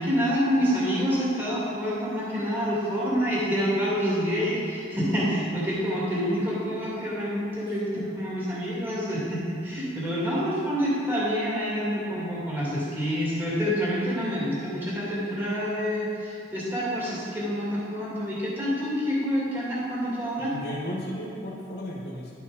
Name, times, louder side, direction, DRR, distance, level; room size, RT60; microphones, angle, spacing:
voice 1, 0.0-20.5, equal, 10° right, -8 dB, 2.4 m, -27 dB
voice 2, 7.6-8.2 20.4-22.3, left 1 dB, 60° left, -3 dB, 1.6 m, -35 dB
11.5 x 6.2 x 5.1 m, 2.5 s
head